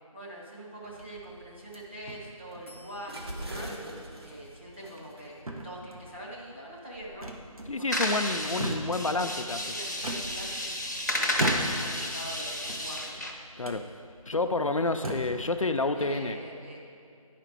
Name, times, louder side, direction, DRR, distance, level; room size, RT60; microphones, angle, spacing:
voice 1, 0.1-3.7 4.2-5.4 5.6-7.3 7.8-8.6 9.1-10.7 11.1-13.1 15.1-15.4 15.8-16.8, right 1 dB, 20° right, -6 dB, 0.9 m, -44 dB
sound 1, 0.8-16.2, right 1 dB, 45° right, 0.9 m, -48 dB
sound 2, 0.8-1.3 2.1-2.8 3.6-3.8 4.2-4.3 4.8-5.2 5.5-6.2 7.2-7.9 8.3-9.1 10.0-10.9 11.3-12.0 12.6-13.2 13.6-13.8 14.5-14.6 14.9-15.4, right 2 dB, 75° right, 1.1 m, -36 dB
voice 2, 7.7-9.6 13.6-13.9 14.3-16.4, left 3 dB, 65° left, 7 dB, 0.5 m, -29 dB
sound 3, 7.9-13.3, left 1 dB, 30° left, 0.7 m, -32 dB
10.5 x 5.0 x 4.5 m, 2.5 s
figure-of-eight pair, 175°, 18 cm